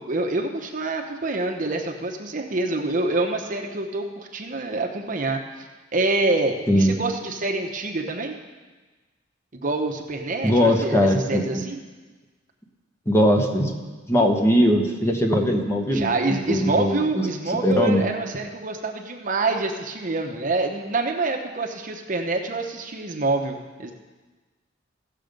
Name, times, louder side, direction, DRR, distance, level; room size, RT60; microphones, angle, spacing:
voice 1, 0.1-5.7 5.9-8.4 9.5-11.8 15.9-23.9, right 2 dB, 45° right, 2 dB, 0.9 m, -26 dB
voice 2, 10.4-11.6 13.1-13.7 14.1-18.0, equal, 15° left, 2 dB, 1.1 m, -20 dB
15.5 x 6.7 x 5.2 m, 1.3 s
head